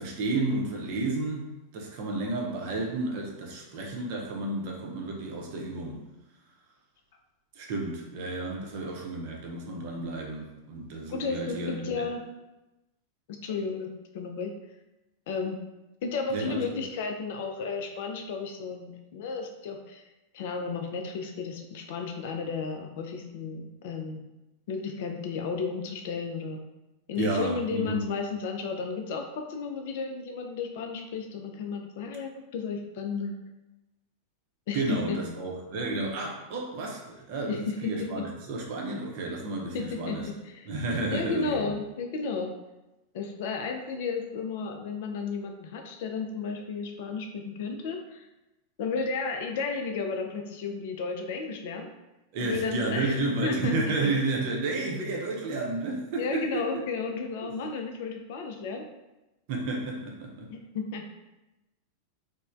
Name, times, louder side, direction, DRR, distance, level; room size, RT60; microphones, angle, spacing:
voice 1, 0.0-6.0 7.6-12.1 16.3-16.6 27.2-28.0 34.7-40.3 40.7-41.7 52.3-56.6 59.5-60.5, right 2 dB, 45° right, -1 dB, 0.5 m, -31 dB
voice 2, 11.1-12.2 13.3-14.6 15.3-15.6 16.0-20.1 20.3-24.2 24.7-26.6 27.1-33.3 34.7-35.2 37.5-38.3 39.7-40.7 41.1-42.5 43.1-48.3 48.8-51.9 52.4-54.1 56.2-58.9 60.5-61.0, left 4 dB, 50° left, 4 dB, 0.3 m, -33 dB
3.0 x 2.0 x 2.4 m, 1.0 s
figure-of-eight pair, 90°, 0 cm